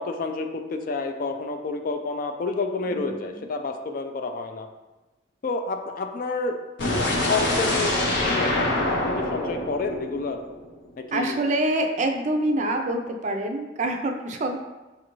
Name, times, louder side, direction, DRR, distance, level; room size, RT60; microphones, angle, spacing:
voice 1, 0.0-4.7 5.4-6.6 7.3-10.4 11.0-11.4, left 3 dB, 50° left, 6 dB, 0.3 m, -29 dB
voice 2, 2.9-3.6 11.1-14.6, right 1 dB, 40° right, 4 dB, 0.4 m, -26 dB
sound 1, 6.8-10.8, left 1 dB, 70° left, 0.7 m, -25 dB
5.3 x 2.5 x 3.0 m, 1.1 s
head